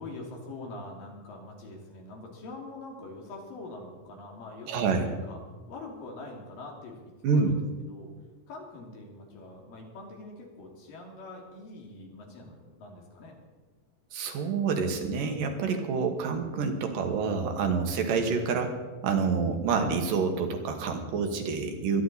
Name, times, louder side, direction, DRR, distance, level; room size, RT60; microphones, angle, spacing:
voice 1, 0.0-5.4 5.7-8.1 8.5-13.3, left 2 dB, 80° left, 0 dB, 4.2 m, -44 dB
voice 2, 4.7-5.1 7.2-7.5 14.1-18.8 19.0-22.0, right 5 dB, 75° right, 4 dB, 3.0 m, -27 dB
23.5 x 10.5 x 4.1 m, 1.3 s
omnidirectional pair, 3.9 m